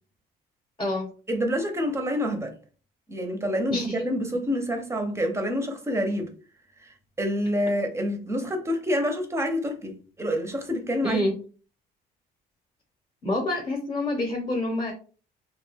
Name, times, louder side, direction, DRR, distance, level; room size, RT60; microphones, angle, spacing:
voice 1, 1.3-2.5 3.1-6.3 6.8-11.2, equal, 15° right, 0.6 m, -27 dB
voice 2, 13.2-14.9, left 1 dB, 20° left, 0.8 m, -27 dB
2.3 x 2.2 x 3.3 m
cardioid pair, 110°, 17 cm